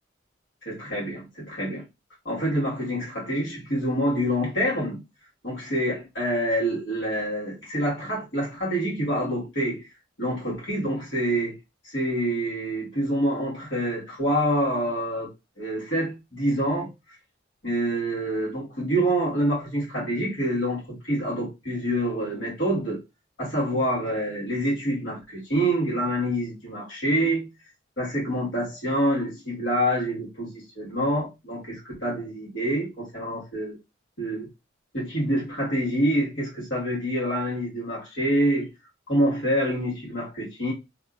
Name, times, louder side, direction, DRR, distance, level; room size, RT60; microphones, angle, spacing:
voice 1, 0.6-1.8 2.2-5.0 5.4-9.8 10.2-11.5 11.8-15.3 15.6-16.9 17.6-23.0 23.4-27.5 28.0-33.8 34.2-34.5 34.9-38.7 39.1-40.7, equal, 75° left, 1.6 m, -26 dB
2.8 x 2.5 x 2.4 m
head